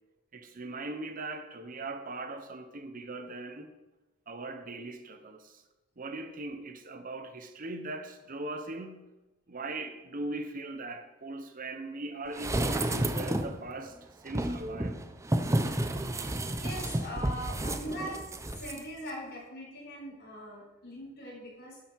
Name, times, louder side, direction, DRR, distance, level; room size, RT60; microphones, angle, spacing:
voice 1, 0.3-3.7 4.3-5.6 6.0-9.1 9.5-15.0, right 2 dB, 45° right, 0.9 m, -40 dB
sound 1, 12.3-13.6 14.3-18.8 19.1-19.2, right 1 dB, 15° right, 0.6 m, -31 dB
voice 2, 16.5-18.2 18.5-21.8, equal, 55° left, 4.1 m, -41 dB
11.5 x 7.6 x 4.7 m
head